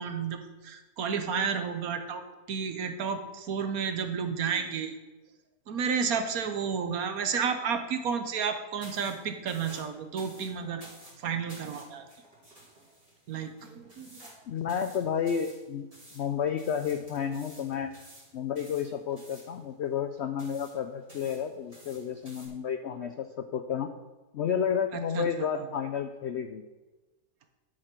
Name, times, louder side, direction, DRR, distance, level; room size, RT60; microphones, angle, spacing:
voice 1, 0.0-2.2 2.5-4.9 5.7-10.8 11.2-12.0 13.3-14.3 24.9-25.3 25.6-25.7, right 6 dB, 65° right, 7 dB, 1.3 m, -31 dB
sound 1, 8.8-22.5, right 1 dB, 20° right, 3.0 m, -53 dB
voice 2, 14.5-15.9 16.1-17.9 18.3-23.9 24.3-26.6, left 7 dB, 75° left, 8 dB, 0.6 m, -31 dB
11.0 x 5.1 x 6.0 m, 1.2 s
omnidirectional pair, 1.8 m